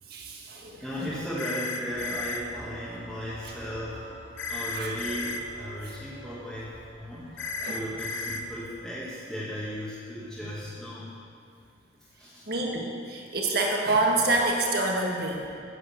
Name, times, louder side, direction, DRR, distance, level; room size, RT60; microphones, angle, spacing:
voice 1, 0.1-1.1 4.7-4.9 5.8-5.9 7.6-7.8 12.5-15.5, right 2 dB, 50° right, 0 dB, 1.6 m, -27 dB
voice 2, 0.8-11.1 12.2-12.5, equal, ahead, -10 dB, 1.6 m, -36 dB
sound 1, 1.4-2.4 4.4-5.4 7.4-8.4, left 3 dB, 75° left, 0.8 m, -33 dB
sound 2, 1.9-8.8, right 2 dB, 75° right, 3.4 m, -48 dB
9.8 x 8.6 x 7.0 m, 2.3 s
head